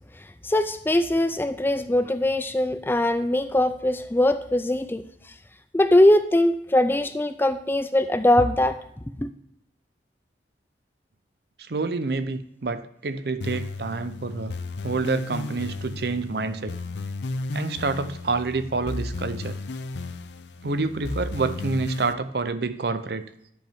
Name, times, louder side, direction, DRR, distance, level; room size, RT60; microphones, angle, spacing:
voice 1, 0.4-5.0 5.7-8.8 9.2-9.3, left 1 dB, 10° left, 10 dB, 0.3 m, -21 dB
voice 2, 11.6-14.5 14.8-16.7 17.5-19.6 20.6-23.2, right 3 dB, 60° right, 12 dB, 0.6 m, -28 dB
sound 1, 13.4-22.1, left 3 dB, 75° left, 0.6 m, -34 dB
10.5 x 5.4 x 3.5 m, 0.76 s
head